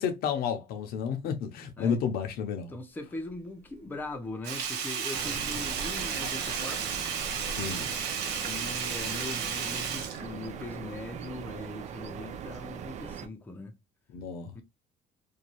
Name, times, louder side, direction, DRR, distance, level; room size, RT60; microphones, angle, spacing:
voice 1, 0.0-2.7 7.6-7.9 14.1-14.5, left 7 dB, 65° left, 0.6 m, -31 dB
voice 2, 2.7-6.9 7.6-8.0 8.4-13.8 14.5-14.6, left 2 dB, 10° left, 0.6 m, -40 dB
Sink (filling or washing), 4.4-11.0 11.3-11.4, right 7 dB, 80° right, 0.8 m, -33 dB
sound 1, 5.1-13.3, right 7 dB, 45° right, 0.4 m, -41 dB
2.6 x 2.2 x 2.9 m
cardioid pair, 120°, 17 cm